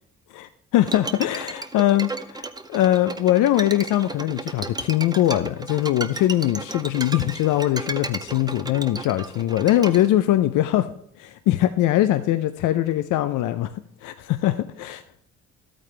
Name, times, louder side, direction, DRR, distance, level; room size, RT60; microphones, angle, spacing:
voice 1, 0.3-10.9 11.2-13.7 14.0-15.0, left 13 dB, 85° left, 10 dB, 0.6 m, -22 dB
Bowed string instrument, 0.8-10.1, right 2 dB, 15° right, 0.7 m, -34 dB
12.5 x 8.9 x 3.3 m, 0.69 s
cardioid pair, 90°, 30 cm